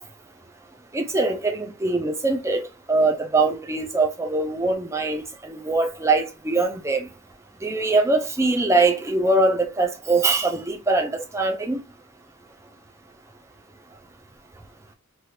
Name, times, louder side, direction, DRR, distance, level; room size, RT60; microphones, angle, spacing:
voice 1, 0.9-7.1 7.6-11.8, right 3 dB, 15° right, 0.5 m, -22 dB
3.1 x 2.4 x 2.8 m
head